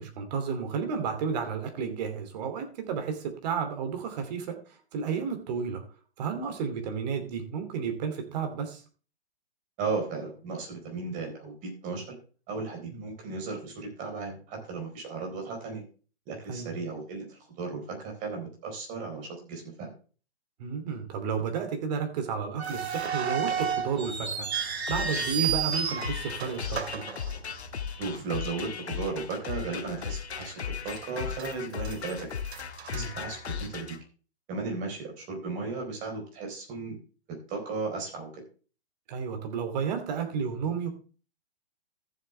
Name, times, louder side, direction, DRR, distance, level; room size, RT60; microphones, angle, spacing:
voice 1, 0.0-4.6 4.9-5.8 6.2-8.8 12.9-13.0 16.5-16.7 20.6-27.0 32.9-33.1 39.1-40.9, right 6 dB, 40° right, 6 dB, 2.7 m, -32 dB
voice 2, 9.8-12.2 12.5-15.8 16.3-19.9 28.0-32.4 32.9-34.0 34.5-37.0 37.3-38.4, right 4 dB, 25° right, 2 dB, 4.3 m, -35 dB
sound 1, 22.6-27.9 28.2-28.3 29.0-29.2 29.7-29.8 30.4-31.0 31.3-33.8, right 7 dB, 80° right, 2.4 m, -32 dB
sound 2, 24.9-34.0, left 7 dB, 85° left, 1.5 m, -37 dB
14.0 x 7.7 x 3.4 m, 0.37 s
hypercardioid pair, 145°, 32 cm